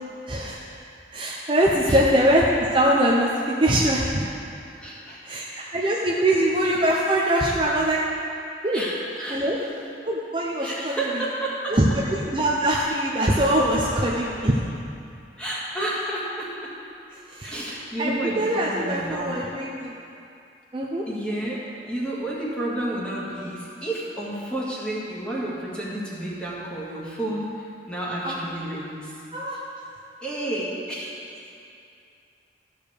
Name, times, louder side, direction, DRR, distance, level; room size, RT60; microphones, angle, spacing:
voice 1, 0.3-0.6 1.1-4.2 5.2-8.0 8.6-8.8 9.3-9.6 10.0-11.1 11.7-11.8 12.1-14.6 17.3-17.6 18.0-19.9 20.7-21.1 28.2-28.8 29.3-29.6, right 1 dB, 25° right, -4 dB, 0.7 m, -23 dB
voice 2, 4.8-5.2 5.6-5.7 8.7-9.7 10.6-11.8 15.4-16.7 17.3-19.5 21.1-29.2 30.2-31.2, right 1 dB, 5° left, -7 dB, 1.9 m, -31 dB
13.5 x 4.9 x 6.8 m, 2.6 s
head